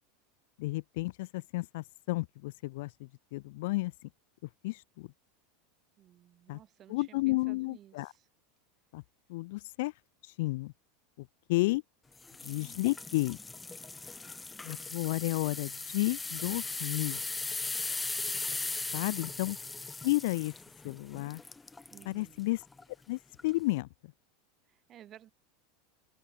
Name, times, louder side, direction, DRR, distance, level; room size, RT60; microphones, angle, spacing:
voice 1, 0.6-2.9 3.3-3.9 4.6-5.1 6.5-6.6 6.9-8.1 8.9-9.0 9.3-9.9 10.4-10.7 11.5-11.8 12.4-13.4 14.6-17.2 18.9-19.6 20.0-20.5 20.8-21.4 22.1-22.6 23.1-23.9, left 21 dB, 70° left, 0.4 m, -32 dB
voice 2, 6.0-8.3 18.9-19.4 21.9-22.4 24.7-25.3, right 11 dB, 35° right, 3.4 m, -56 dB
sound 1, 12.2-22.1 22.6-22.8 23.4-23.5, left 3 dB, 10° left, 0.5 m, -39 dB
supercardioid pair, 120°, 0 cm